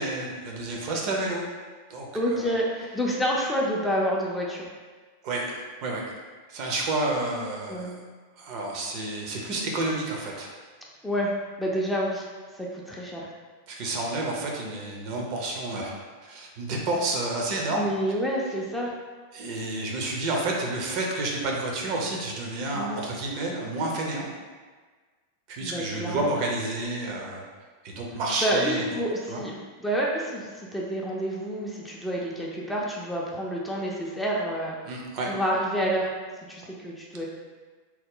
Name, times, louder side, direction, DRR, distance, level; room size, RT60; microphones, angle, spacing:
voice 1, 0.0-1.4 1.9-2.5 5.2-6.1 6.5-8.0 8.4-10.5 13.7-15.9 16.2-17.9 19.3-24.3 25.5-27.4 27.8-28.9 29.3-29.4 34.8-35.3, right 2 dB, 45° right, -1 dB, 0.6 m, -30 dB
voice 2, 2.1-4.6 7.7-7.9 11.0-12.3 12.5-13.3 17.8-18.9 22.7-23.0 25.6-26.3 28.4-34.8 35.2-36.1 36.5-37.3, equal, 5° left, -4 dB, 0.5 m, -28 dB
2.9 x 2.1 x 3.7 m, 1.4 s
figure-of-eight pair, 90°, 0 cm